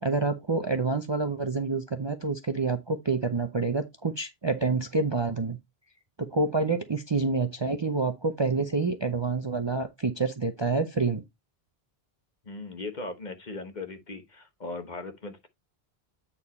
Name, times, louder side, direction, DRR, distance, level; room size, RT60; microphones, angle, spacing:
voice 1, 0.0-5.6 6.2-11.2, right 3 dB, 30° right, 0.6 m, -27 dB
voice 2, 12.4-15.5, left 3 dB, 45° left, 1.3 m, -38 dB
8.7 x 4.4 x 4.1 m
omnidirectional pair, 1.1 m